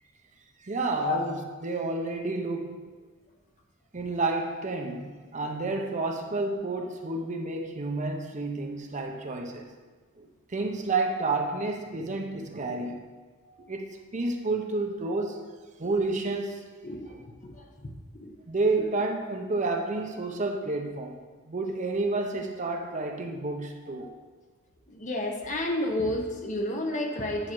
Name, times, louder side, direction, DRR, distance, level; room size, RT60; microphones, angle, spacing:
voice 1, 0.6-2.8 3.9-9.7 10.2-13.0 13.7-15.4 15.8-16.7 18.5-21.2 21.5-24.1, right 3 dB, 35° right, 3 dB, 0.6 m, -30 dB
voice 2, 16.8-17.9 18.1-18.3 18.8-18.9 23.9-24.1 24.9-27.5, left 1 dB, 35° left, 1 dB, 0.9 m, -31 dB
9.6 x 5.6 x 3.1 m, 1.4 s
head